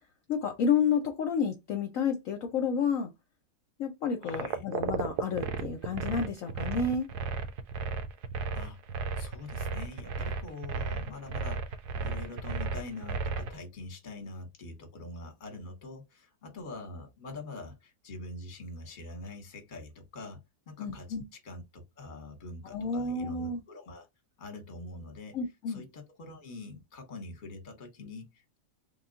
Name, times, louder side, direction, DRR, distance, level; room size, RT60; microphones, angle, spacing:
voice 1, 0.3-3.1 3.8-7.1 20.8-21.2 22.7-23.6 25.3-25.8, left 6 dB, 65° left, 0.9 m, -30 dB
voice 2, 4.2-4.6 8.5-21.2 21.4-24.1 24.4-25.4 25.7-28.6, left 2 dB, 35° left, 1.0 m, -44 dB
sound 1, 4.2-13.5, right 5 dB, 80° right, 1.1 m, -34 dB
3.6 x 2.3 x 3.8 m
omnidirectional pair, 1.7 m